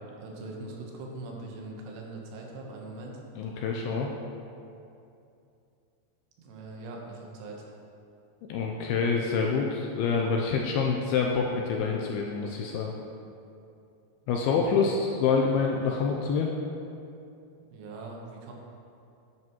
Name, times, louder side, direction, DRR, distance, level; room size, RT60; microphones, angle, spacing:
voice 1, 0.2-3.2 6.4-7.7 14.5-15.2 17.6-18.5, right 2 dB, 75° right, 0 dB, 3.2 m, -42 dB
voice 2, 3.4-4.1 8.5-12.9 14.3-16.5, left 5 dB, 85° left, 0 dB, 2.3 m, -26 dB
11.0 x 10.0 x 3.0 m, 2.6 s
omnidirectional pair, 4.9 m